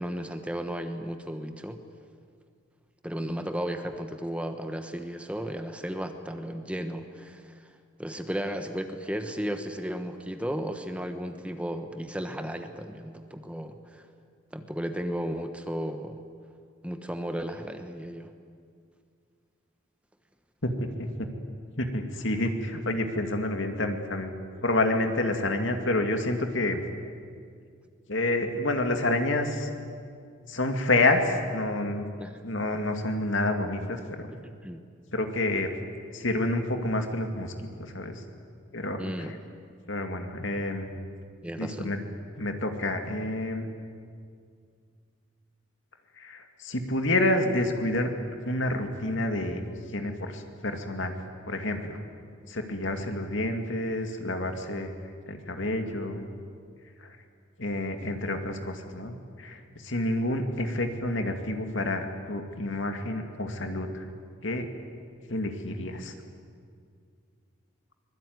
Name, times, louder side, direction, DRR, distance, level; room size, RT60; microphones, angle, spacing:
voice 1, 0.0-1.8 3.0-7.7 8.0-14.0 14.5-16.2 16.8-18.3 32.2-32.3 34.4-34.8 39.0-39.4 41.4-41.9, equal, 5° right, 7 dB, 1.1 m, -34 dB
voice 2, 20.6-21.3 21.8-24.3 24.6-26.8 28.1-29.7 30.5-32.0 32.4-34.3 35.1-35.7 36.1-38.2 38.7-39.4 39.9-40.9 41.6-42.0 42.4-43.7 46.2-48.1 48.5-49.6 49.9-51.1 51.5-52.0 52.5-54.9 55.3-56.3 57.0-57.1 57.6-64.0 64.4-64.7 65.3-66.1, left 2 dB, 70° left, 5 dB, 2.4 m, -29 dB
24.5 x 21.0 x 9.6 m, 2.2 s
head